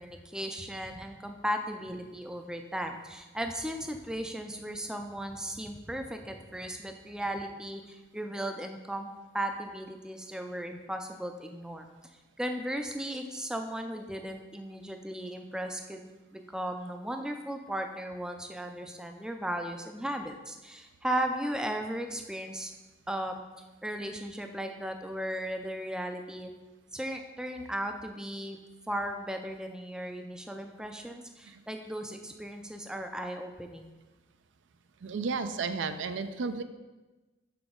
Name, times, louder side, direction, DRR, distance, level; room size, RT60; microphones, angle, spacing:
voice 1, 0.0-9.1 9.3-11.9 12.4-22.7 23.1-23.4 23.8-26.5 26.9-28.6 28.9-33.9, right 1 dB, 5° right, 5 dB, 0.4 m, -36 dB
voice 2, 35.0-36.6, right 4 dB, 75° right, 10 dB, 0.4 m, -33 dB
5.9 x 5.9 x 3.7 m, 1.2 s
head